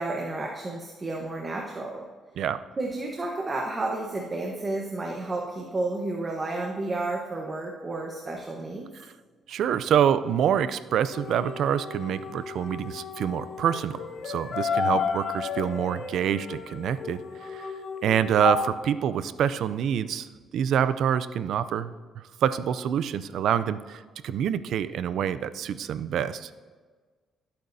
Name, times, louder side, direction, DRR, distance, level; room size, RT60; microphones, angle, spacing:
voice 1, 0.0-2.0 2.8-8.9 14.8-15.1, right 2 dB, 30° right, 0 dB, 1.2 m, -31 dB
voice 2, 9.5-14.0 14.2-17.7 18.0-20.3 20.5-26.5, right 9 dB, 75° right, 14 dB, 0.4 m, -26 dB
sound 1, 11.1-18.6, left 6 dB, 65° left, 1.4 m, -32 dB
16.5 x 8.7 x 2.7 m, 1.5 s
cardioid pair, 90°, 0 cm